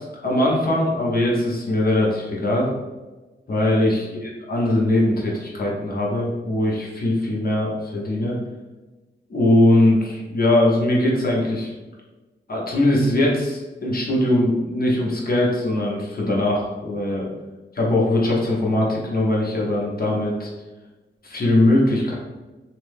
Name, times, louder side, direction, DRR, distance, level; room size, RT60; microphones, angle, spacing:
voice 1, 0.2-2.7 3.5-8.3 9.3-11.7 12.5-17.3 17.7-20.5 21.2-22.1, left 1 dB, 50° left, -3 dB, 0.8 m, -21 dB
2.9 x 2.1 x 3.2 m, 1.2 s
wide cardioid pair, 95°, 19 cm